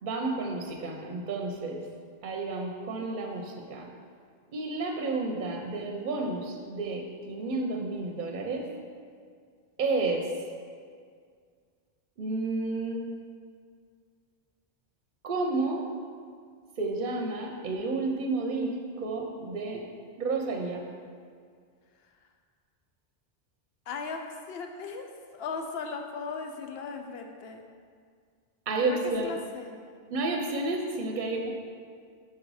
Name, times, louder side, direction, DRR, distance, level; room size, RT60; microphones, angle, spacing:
voice 1, 0.0-1.8 2.2-3.9 4.5-8.7 9.8-10.3 12.2-13.0 15.2-15.9 16.8-19.8 20.2-20.8 28.7-29.3 30.1-31.5, right 3 dB, 55° right, 1 dB, 0.7 m, -31 dB
voice 2, 23.9-25.1 25.3-27.6 28.8-29.9, left 4 dB, 75° left, 4 dB, 0.8 m, -37 dB
5.7 x 3.8 x 4.7 m, 2.1 s
omnidirectional pair, 1.0 m